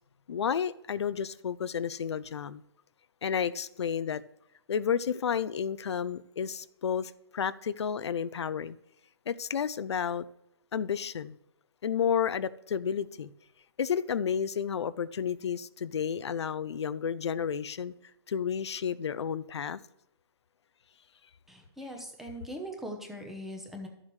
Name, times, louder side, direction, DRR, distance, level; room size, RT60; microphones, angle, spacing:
voice 1, 0.3-2.6 3.2-4.2 4.7-8.8 9.3-10.3 10.7-11.4 11.8-13.3 13.8-17.9 18.3-19.8, left 7 dB, 85° left, 0.5 m, -31 dB
voice 2, 21.5-23.9, equal, ahead, 0.9 m, -41 dB
12.5 x 7.4 x 3.2 m
hypercardioid pair, 160°, 14 cm